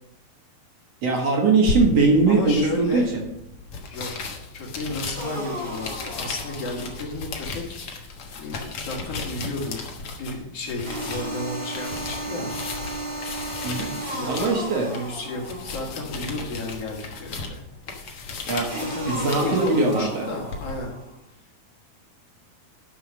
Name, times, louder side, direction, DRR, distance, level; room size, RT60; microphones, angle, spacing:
voice 1, 1.0-3.0 13.6-13.9 14.3-14.9 18.5-18.7 19.1-20.3, right 3 dB, 60° right, 0 dB, 1.7 m, -21 dB
Shulffing paper and book. Foley Sound, 1.6-20.7, left 4 dB, 60° left, 1.4 m, -35 dB
voice 2, 2.3-3.1 3.9-4.1 4.5-9.8 10.2-12.5 13.7-14.4 14.9-17.6 18.0-18.1 18.9-20.9, left 2 dB, 45° left, 0 dB, 2.5 m, -33 dB
sound 1, 5.1-7.1 10.8-16.1 18.7-21.1, right 1 dB, 30° right, 2.8 m, -34 dB
11.5 x 5.7 x 6.2 m, 0.83 s
omnidirectional pair, 4.5 m